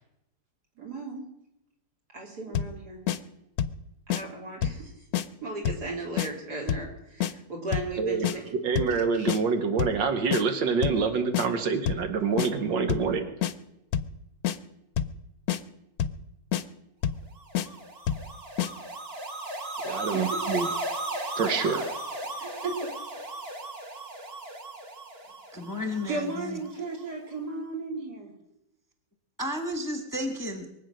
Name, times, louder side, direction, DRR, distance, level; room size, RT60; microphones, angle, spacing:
voice 1, 0.8-1.3 2.1-3.0 4.1-5.0 5.4-8.5 9.1-9.3 19.8-20.4 22.4-22.9 26.1-28.3, right 3 dB, 60° right, 0 dB, 3.5 m, -36 dB
sound 1, 2.5-2.8 3.1-3.2 3.6-3.8 4.1-4.2 4.6-4.8 5.1-5.3 5.7-5.9 6.2-6.3 6.7-6.9 7.2-7.3 7.7-7.9 8.2-8.4 8.8-9.0 9.3-9.4 9.8-10.0 10.3-10.4 10.8-11.0 11.3-11.5 11.9-12.1 12.4-12.5 12.9-13.1 13.4-13.5 13.9-14.2 14.4-14.6 15.0-15.2 15.5-15.6 16.0-16.2 16.5-16.6 17.0-17.3 17.5-17.7 18.1-18.3 18.6-18.7, left 10 dB, 65° left, 1.0 m, -27 dB
voice 2, 8.6-13.3 19.8-20.7 21.4-21.9, right 5 dB, 85° right, 7 dB, 1.9 m, -26 dB
sound 2, 17.4-26.7, right 2 dB, 35° right, 1.8 m, -36 dB
voice 3, 25.5-26.6 29.4-30.7, left 1 dB, 10° left, 5 dB, 1.1 m, -32 dB
23.0 x 8.3 x 6.3 m, 0.88 s
omnidirectional pair, 2.0 m